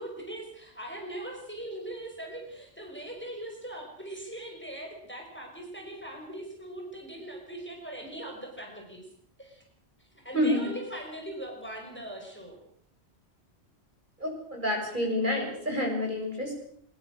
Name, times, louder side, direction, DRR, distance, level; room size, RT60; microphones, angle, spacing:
voice 1, 0.0-9.0 9.4-9.6 10.1-12.6, right 1 dB, 10° left, 1 dB, 5.6 m, -40 dB
voice 2, 14.2-16.5, left 1 dB, 45° right, 0 dB, 7.7 m, -28 dB
24.0 x 22.0 x 6.6 m, 0.64 s
omnidirectional pair, 1.2 m